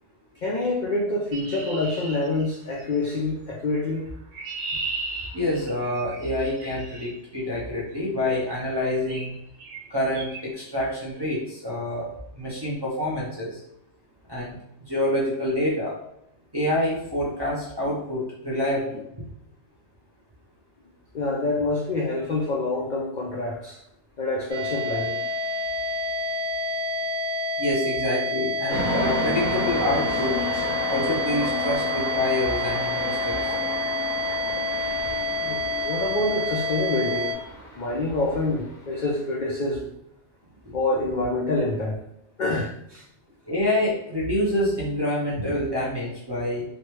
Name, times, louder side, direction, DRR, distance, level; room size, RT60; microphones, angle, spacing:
voice 1, 0.4-4.1 21.1-23.8 24.2-25.2 35.4-37.3 37.8-39.9 40.7-42.0 42.4-43.0, left 2 dB, 60° left, -3 dB, 0.5 m, -26 dB
Chirp tweet, 1.3-2.9 4.0-7.1 8.2-8.5 9.1-9.3 9.6-9.8 10.1-10.4, right 3 dB, 90° right, 1.0 m, -36 dB
voice 2, 5.3-9.3 9.9-12.1 12.3-13.6 14.3-14.6 14.9-16.0 16.5-19.0 27.6-30.4 30.9-33.6 40.7-40.8 43.5-46.6, left 1 dB, 30° right, -7 dB, 0.5 m, -27 dB
sound 1, 24.5-37.3, left 1 dB, 55° right, 0.8 m, -28 dB
sound 2, 28.7-39.0, left 1 dB, 80° left, 1.1 m, -32 dB
3.1 x 2.1 x 2.9 m, 0.77 s
omnidirectional pair, 1.3 m